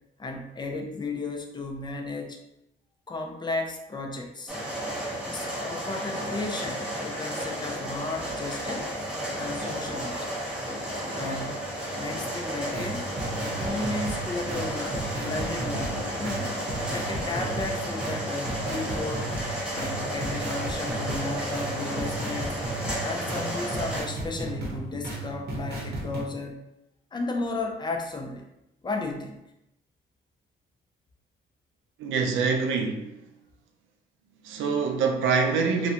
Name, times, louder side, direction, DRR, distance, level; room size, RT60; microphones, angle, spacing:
voice 1, 0.2-2.4 3.1-4.6 5.3-8.9 9.4-10.2 11.1-11.7 12.0-13.1 13.6-16.5 16.9-19.3 19.7-22.6 23.0-26.6 27.1-28.5 28.8-29.4, left 3 dB, 20° left, 0.4 m, -34 dB
sound 1, 4.5-24.0, equal, 5° right, 0.8 m, -32 dB
sound 2, 7.4-17.7, right 1 dB, 45° left, 1.1 m, -48 dB
sound 3, 12.6-26.2, right 2 dB, 55° right, 0.8 m, -35 dB
voice 2, 32.0-33.2 34.4-35.9, right 5 dB, 80° right, 0.4 m, -25 dB
2.4 x 2.1 x 2.7 m
cardioid pair, 90°, 20 cm